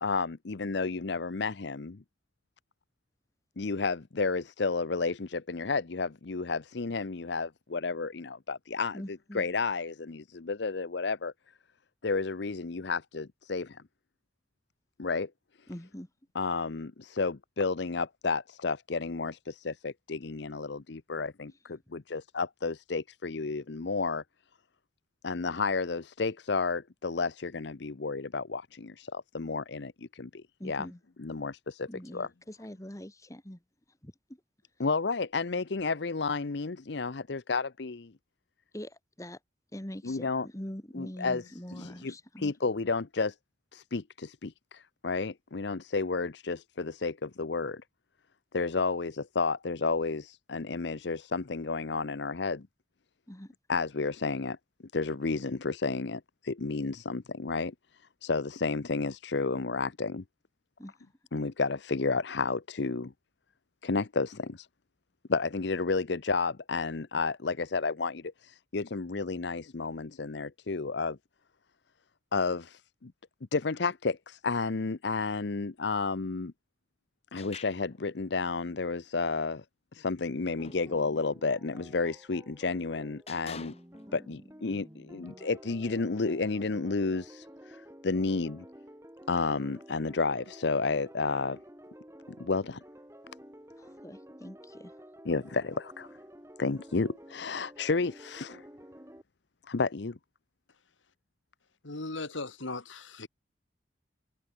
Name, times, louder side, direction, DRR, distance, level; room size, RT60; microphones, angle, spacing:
voice 1, 0.0-2.0 3.6-11.3 12.0-13.8 15.0-15.3 16.3-24.2 25.2-30.9 31.2-32.3 34.8-38.1 40.0-40.5 40.9-41.4 41.7-43.4 43.7-47.8 48.5-52.7 53.7-54.6 54.8-60.2 61.3-63.1 63.8-64.7 65.3-71.2 72.3-73.1 73.5-76.5 77.3-79.6 79.9-83.7 84.1-88.7 89.3-91.6 92.4-92.8 95.2-96.1 96.6-98.6 99.7-100.2, left 4 dB, 65° left, 0.7 m, -31 dB
voice 2, 8.9-9.5 15.7-16.1 30.6-31.0 31.9-33.6 34.0-34.4 38.7-39.4 39.7-42.5 53.3-53.5 60.8-61.0 93.8-94.9, equal, 15° left, 1.6 m, -43 dB
sound 1, 77.4-78.0 80.3-80.9 82.0-82.2 83.3-84.1, left 5 dB, 30° left, 1.3 m, -47 dB
sound 2, 80.6-99.2, equal, 15° right, 4.3 m, -51 dB
voice 3, 101.8-103.3, left 2 dB, 80° left, 2.3 m, -38 dB
head